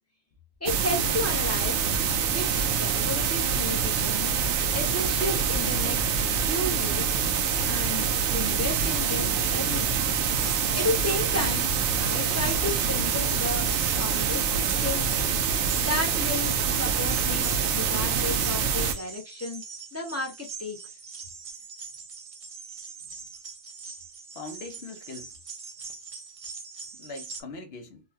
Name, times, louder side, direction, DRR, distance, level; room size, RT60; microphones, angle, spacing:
voice 1, 0.6-1.9 2.3-4.3 4.7-6.0 6.4-7.2 7.6-8.1 8.3-10.0 10.7-11.7 12.0-13.7 14.0-15.1 15.8-19.6 19.9-20.8, left 2 dB, 15° left, 0.6 m, -33 dB
sound 1, 0.7-18.9, right 7 dB, 85° right, 0.9 m, -25 dB
sound 2, 8.4-27.4, right 5 dB, 45° right, 0.5 m, -43 dB
voice 2, 24.3-25.3 27.0-28.0, left 3 dB, 65° left, 1.0 m, -41 dB
3.8 x 2.1 x 2.7 m
omnidirectional pair, 1.2 m